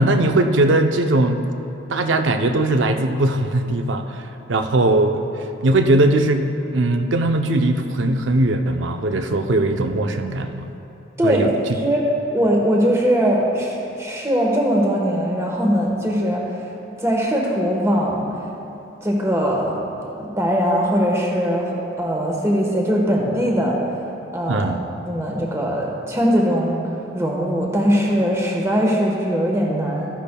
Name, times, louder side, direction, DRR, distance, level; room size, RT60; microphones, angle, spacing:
voice 1, 0.0-1.4 1.9-5.2 5.6-6.5 6.7-10.7 11.2-11.5 24.5-24.8, right 2 dB, 70° right, 6 dB, 0.6 m, -19 dB
voice 2, 12.3-16.5 17.0-18.4 19.0-23.8 24.3-24.7 25.1-26.8 27.1-30.1, equal, 15° right, -1 dB, 1.2 m, -20 dB
13.5 x 10.0 x 2.2 m, 2.9 s
head